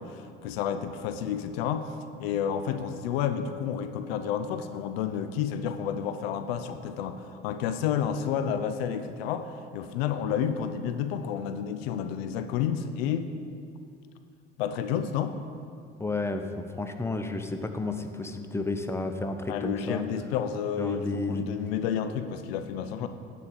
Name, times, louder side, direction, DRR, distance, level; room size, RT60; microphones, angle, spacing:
voice 1, 0.0-1.9 2.2-13.3 14.6-15.4 19.5-23.1, left 8 dB, 75° left, 9 dB, 0.6 m, -30 dB
voice 2, 16.0-20.0 20.8-21.5 23.0-23.1, left 2 dB, 10° left, 6 dB, 0.8 m, -32 dB
9.8 x 4.3 x 7.4 m, 2.4 s
hypercardioid pair, 55°, 30 cm